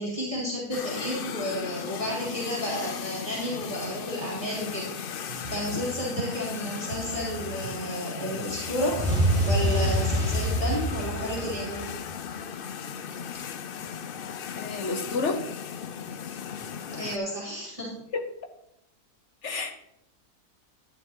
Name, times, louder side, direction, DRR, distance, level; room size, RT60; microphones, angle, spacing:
voice 1, 0.0-4.9 5.5-9.0 9.5-11.9 16.9-17.9, equal, 20° right, -6 dB, 3.3 m, -32 dB
sound 1, 0.7-17.2, left 7 dB, 70° left, 0.5 m, -37 dB
sound 2, 5.3-10.3, right 4 dB, 50° right, 0.7 m, -40 dB
sound 3, 8.9-12.1, right 1 dB, 5° left, 2.2 m, -26 dB
voice 2, 14.6-15.5 18.1-18.2 19.4-19.9, left 3 dB, 50° left, 5 dB, 1.3 m, -30 dB
11.5 x 10.5 x 3.0 m, 0.80 s
omnidirectional pair, 1.6 m